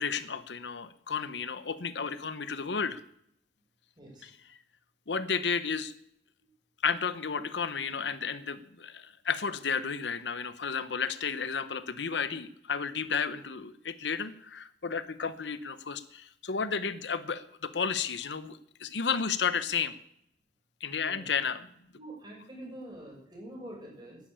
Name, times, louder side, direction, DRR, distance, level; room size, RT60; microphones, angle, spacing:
voice 1, 0.0-3.0 4.2-4.3 5.1-5.9 6.8-19.9 20.8-21.7, left 6 dB, 85° left, 14 dB, 0.9 m, -32 dB
voice 2, 4.0-4.3 20.9-21.3 22.0-24.2, right 1 dB, 25° right, -2 dB, 6.6 m, -45 dB
12.0 x 10.5 x 8.9 m, 0.71 s
head